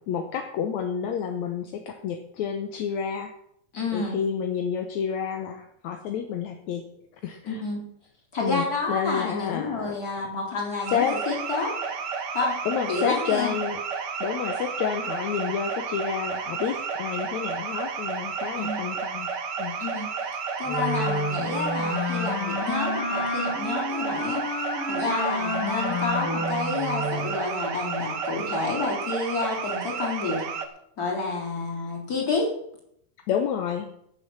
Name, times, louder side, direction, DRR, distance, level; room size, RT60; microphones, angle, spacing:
voice 1, 0.1-3.3 3.9-6.8 7.2-7.6 8.4-10.3 10.9-11.2 12.7-13.8 14.2-19.3 19.6-19.8 33.3-33.9, left 8 dB, 75° left, 5 dB, 2.2 m, -29 dB
voice 2, 3.7-4.2 7.4-7.8 8.3-11.7 12.3-12.6 12.9-13.6 18.6-18.8 19.8-20.1 20.6-24.4 24.8-30.4 31.0-32.5, left 3 dB, 30° left, -2 dB, 4.2 m, -29 dB
sound 1, 10.8-30.7, right 5 dB, 60° right, 1.1 m, -32 dB
Wind instrument woodwind instrument, 20.6-27.3, left 2 dB, 50° left, 3.7 m, -30 dB
15.0 x 6.9 x 7.1 m, 0.72 s
omnidirectional pair, 3.5 m